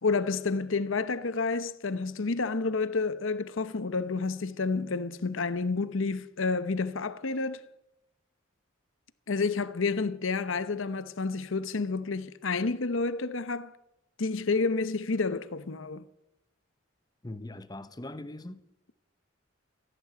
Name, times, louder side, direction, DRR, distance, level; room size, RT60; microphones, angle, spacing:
voice 1, 0.0-7.6 9.3-13.7 14.2-16.0, left 4 dB, 70° left, 0.8 m, -30 dB
voice 2, 17.2-18.6, left 1 dB, 20° left, 0.8 m, -41 dB
16.5 x 10.0 x 8.9 m
head